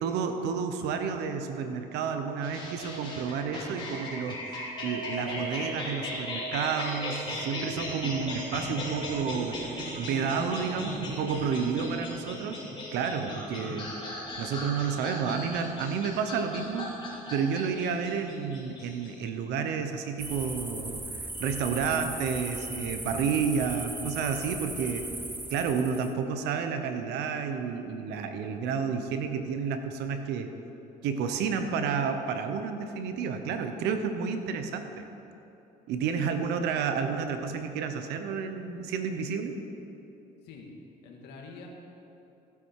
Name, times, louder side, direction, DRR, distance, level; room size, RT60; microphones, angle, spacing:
voice 1, 0.0-13.9 14.4-16.9 17.3-21.0 21.4-25.0 25.5-30.5 31.0-35.0 35.9-39.6, right 6 dB, 85° right, 7 dB, 1.0 m, -31 dB
sound 1, 2.4-19.3, left 1 dB, 25° left, 3.1 m, -37 dB
Bowed string instrument, 7.9-12.1, right 9 dB, 45° right, 0.4 m, -42 dB
sound 2, 20.2-26.1, right 2 dB, 10° right, 1.0 m, -38 dB
voice 2, 41.0-41.7, left 5 dB, 85° left, 0 dB, 2.1 m, -46 dB
15.5 x 8.4 x 4.8 m, 3.0 s
cardioid pair, 110°, 17 cm